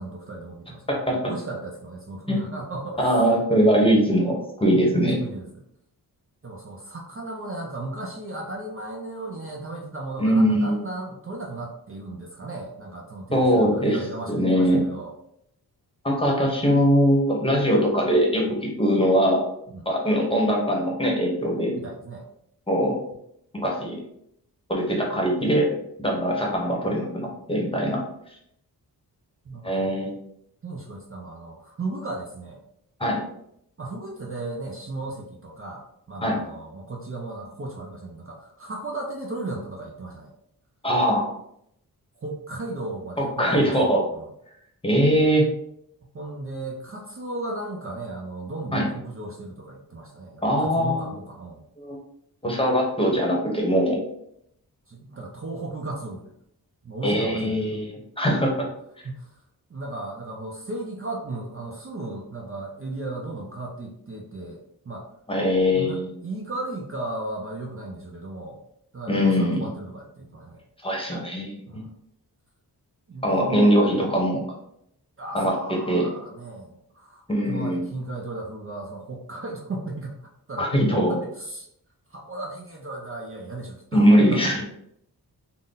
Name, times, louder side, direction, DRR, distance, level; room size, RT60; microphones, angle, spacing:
voice 1, 0.0-3.2 5.2-5.5 6.4-15.1 16.2-16.4 19.7-19.9 21.7-22.3 29.4-29.9 30.6-32.6 33.8-40.3 42.2-44.3 46.1-51.6 54.9-56.3 56.8-57.7 59.0-59.3 59.7-64.6 64.8-65.1 65.7-68.6 68.9-70.6 71.7-71.9 73.1-73.5 75.2-81.7 82.1-84.5, right 2 dB, 35° right, -1 dB, 0.5 m, -35 dB
voice 2, 3.0-5.2 10.2-10.8 13.3-14.0 14.3-14.8 16.0-19.4 19.8-21.7 22.7-23.0 23.5-24.0 24.7-25.7 26.0-28.0 29.6-30.1 33.0-33.2 36.2-36.4 40.8-41.3 43.2-44.0 44.8-45.5 48.7-48.8 50.4-51.1 51.8-52.0 52.4-54.0 57.0-58.5 65.3-66.1 69.1-69.6 70.8-71.8 73.2-74.4 75.3-75.5 75.9-76.0 77.3-77.8 80.6-81.2 83.9-84.6, equal, 15° left, -1 dB, 0.9 m, -21 dB
3.9 x 2.1 x 3.8 m, 0.74 s
wide cardioid pair, 125°, 38 cm